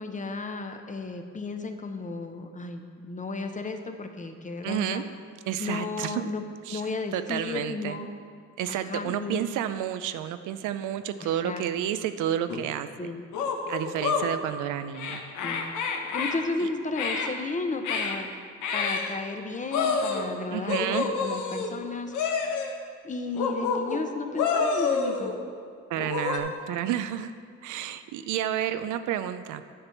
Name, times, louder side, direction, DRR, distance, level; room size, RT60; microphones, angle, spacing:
voice 1, 0.0-5.0 5.6-6.4 6.7-8.1 8.7-9.4 11.2-11.7 13.0-13.2 15.4-15.7 16.1-18.3 18.7-22.5 23.0-25.4, left 3 dB, 25° left, 6 dB, 0.8 m, -34 dB
voice 2, 4.6-5.0 5.5-6.2 6.7-6.8 7.1-8.0 8.6-13.1 13.7-15.2 16.6-16.7 20.5-21.1 25.9-27.3 27.6-29.6, right 11 dB, 85° right, 11 dB, 0.5 m, -30 dB
sound 1, 12.5-12.6 13.3-14.3 14.9-16.4 16.9-17.3 17.8-18.2 18.6-19.1 19.7-20.3 20.7-21.7 22.1-22.7 23.3-24.0 24.3-25.4 26.0-26.4, left 5 dB, 90° left, 1.0 m, -28 dB
10.0 x 4.3 x 7.0 m, 2.1 s
cardioid pair, 90°, 30 cm